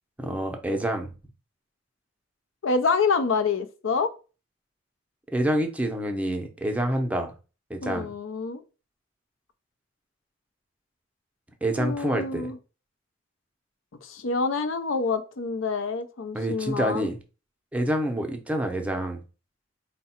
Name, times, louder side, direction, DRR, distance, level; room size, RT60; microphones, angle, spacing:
voice 1, 0.2-1.1 5.3-7.3 7.7-8.1 11.6-12.5 16.3-17.2 17.7-19.2, right 1 dB, 5° right, 0.6 m, -27 dB
voice 2, 2.6-4.1 7.8-8.6 11.8-12.6 14.0-17.1, left 4 dB, 75° left, 0.6 m, -27 dB
4.7 x 2.2 x 4.2 m
head